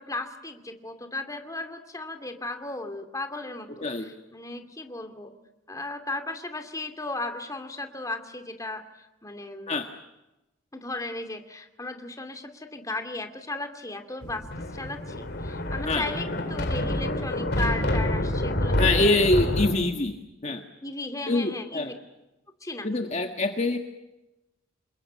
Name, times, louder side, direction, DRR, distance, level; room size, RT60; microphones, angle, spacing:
voice 1, 0.0-5.3 5.7-9.8 10.7-14.5 14.7-19.3 20.8-21.9 22.6-22.9, left 2 dB, 15° left, 6 dB, 2.4 m, -36 dB
Thunder, 14.2-19.7, left 1 dB, 55° left, 3.3 m, -27 dB
voice 2, 18.8-20.1 20.4-20.6 21.3-21.9 22.8-23.8, left 2 dB, 35° left, 4 dB, 1.6 m, -24 dB
27.5 x 21.5 x 8.6 m, 0.97 s
head